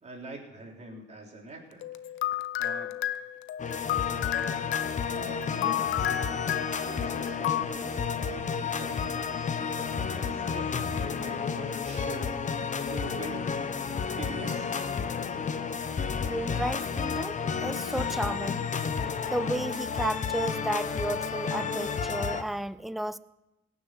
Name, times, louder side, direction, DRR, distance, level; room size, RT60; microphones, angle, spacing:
voice 1, 0.0-1.9 2.6-2.9 5.1-6.4 6.8-13.6 14.2-14.7, right 2 dB, 35° right, 0 dB, 3.8 m, -44 dB
sound 1, 1.8-7.7, left 13 dB, 80° left, 0.6 m, -32 dB
sound 2, 3.6-22.4, left 6 dB, 40° left, 1.0 m, -31 dB
voice 2, 16.2-18.6 19.2-23.2, right 1 dB, ahead, 15 dB, 0.5 m, -33 dB
17.5 x 7.2 x 8.0 m, 0.96 s
cardioid pair, 90°, 20 cm